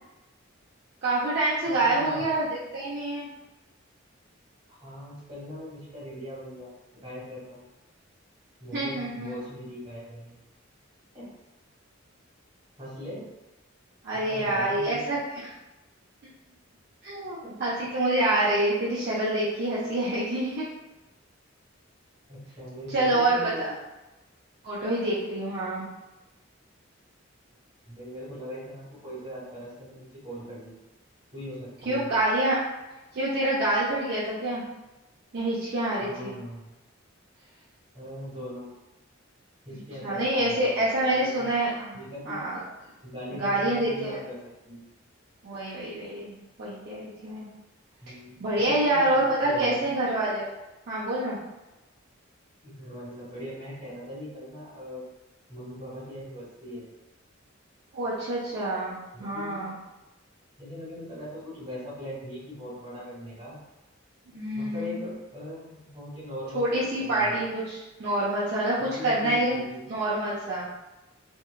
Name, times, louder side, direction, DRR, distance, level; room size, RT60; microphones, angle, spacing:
voice 1, 1.0-2.5 2.7-3.3 8.7-9.3 14.0-15.2 17.0-20.6 22.9-23.3 23.6-23.7 24.6-25.9 31.9-32.6 33.1-34.6 35.3-36.3 40.0-42.0 42.3-42.6 43.3-44.2 45.4-47.5 48.4-50.5 50.9-51.4 57.9-59.7 64.3-65.0 66.5-69.6 69.9-70.7, right 1 dB, 55° right, -9 dB, 0.5 m, -27 dB
voice 2, 1.6-2.3 4.7-7.7 8.6-10.4 11.1-11.3 12.8-13.3 14.1-15.2 17.4-17.6 22.3-23.6 27.9-30.8 31.3-32.1 36.0-36.6 37.9-38.7 39.6-41.5 41.9-42.5 43.0-44.4 44.6-44.8 48.0-50.0 52.6-55.0 55.5-56.9 59.1-59.6 60.6-63.6 64.5-67.4 68.8-70.0, left 1 dB, 25° right, -9 dB, 1.3 m, -40 dB
2.7 x 2.2 x 2.2 m, 1.0 s
head